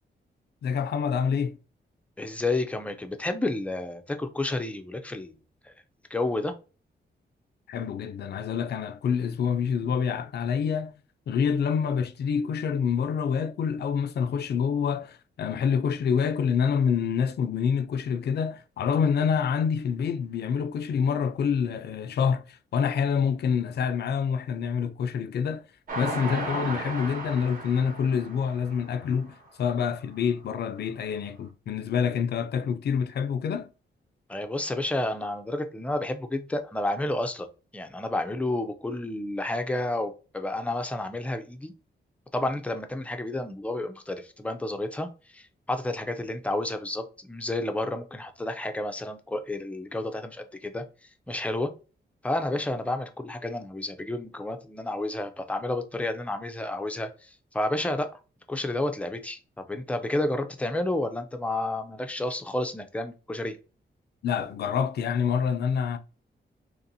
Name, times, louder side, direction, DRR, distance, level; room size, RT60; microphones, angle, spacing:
voice 1, 0.6-1.6 7.7-10.9 11.3-25.6 25.9-33.7 64.2-66.0, left 7 dB, 65° left, 0.4 m, -27 dB
voice 2, 2.2-5.4 5.6-5.7 6.1-6.5 34.3-37.5 37.7-41.7 42.3-50.8 51.3-51.7 52.2-58.1 58.5-63.6, left 2 dB, 5° left, 0.4 m, -30 dB
Train, 25.9-29.3 29.8-29.9 30.2-30.3, right 3 dB, 50° right, 1.2 m, -35 dB
4.1 x 3.0 x 2.6 m
wide cardioid pair, 175°, 19 cm